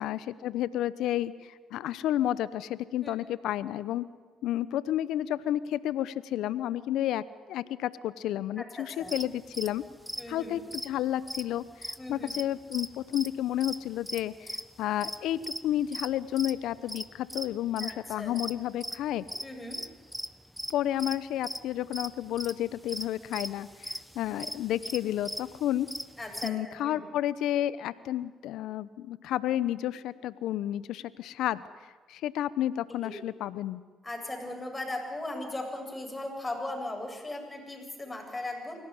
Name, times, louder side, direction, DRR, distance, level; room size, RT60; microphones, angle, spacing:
voice 1, 0.0-4.0 4.4-7.2 7.5-9.8 10.3-19.2 20.7-25.9 26.4-31.6 32.1-33.8, left 12 dB, 75° left, 16 dB, 0.9 m, -31 dB
voice 2, 8.6-9.1 10.2-10.6 12.0-12.3 17.8-18.3 19.4-19.8 26.2-27.0 33.0-33.1 34.0-38.8, left 2 dB, 20° left, 2 dB, 7.8 m, -38 dB
sound 1, 9.1-12.5 12.7-17.9 18.4-20.7 21.0-21.2 21.4-21.6 21.9-26.5, equal, ahead, 1.1 m, -39 dB
24.0 x 17.0 x 10.0 m, 1.4 s
hypercardioid pair, 55°, 0 cm